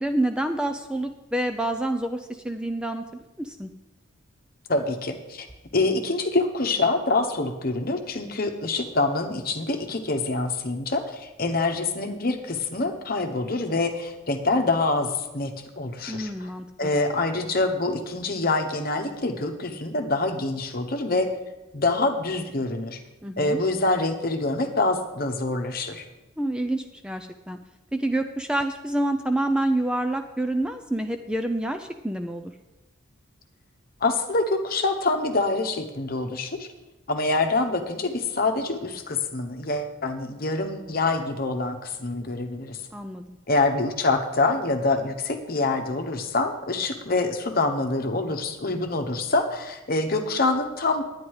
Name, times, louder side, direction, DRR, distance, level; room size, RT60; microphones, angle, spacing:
voice 1, 0.0-3.7 16.1-16.9 23.2-23.6 26.4-27.6 27.9-32.5 42.9-43.4, right 1 dB, 5° right, 7 dB, 0.4 m, -28 dB
voice 2, 4.7-5.5 5.7-16.5 16.8-21.3 21.7-23.0 23.4-26.1 34.0-36.7 37.1-42.8 43.5-51.0, left 3 dB, 45° left, 6 dB, 1.1 m, -25 dB
10.5 x 9.7 x 4.8 m, 1.0 s
head